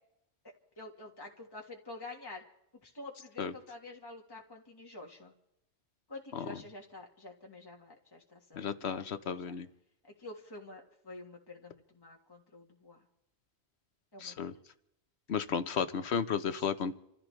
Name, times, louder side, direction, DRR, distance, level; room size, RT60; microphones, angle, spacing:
voice 1, 0.8-2.4 2.8-5.3 6.1-9.5 10.0-13.0 14.1-14.3 16.4-16.6, left 2 dB, 20° left, 0 dB, 1.7 m, -48 dB
voice 2, 8.5-9.7 14.2-14.5 15.3-16.9, left 6 dB, 90° left, 11 dB, 1.2 m, -33 dB
27.5 x 15.0 x 3.3 m, 0.82 s
omnidirectional pair, 1.1 m